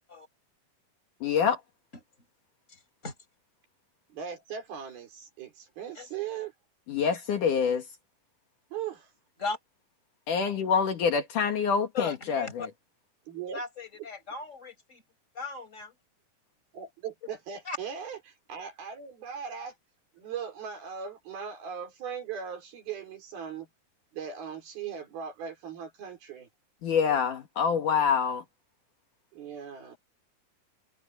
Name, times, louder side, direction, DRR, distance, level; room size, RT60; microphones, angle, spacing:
voice 1, 1.2-1.6 6.9-7.8 10.3-12.7 26.8-28.4, left 6 dB, 60° left, 3.1 m, -26 dB
voice 2, 4.1-6.5 8.7-9.1 13.3-13.6 16.7-19.7 20.2-23.7 24.1-26.5 29.3-30.0, right 7 dB, 85° right, 6.2 m, -39 dB
voice 3, 11.9-12.7 13.5-15.0 15.4-15.9 17.7-17.8, left 4 dB, 20° left, 5.5 m, -37 dB
omnidirectional pair, 4.2 m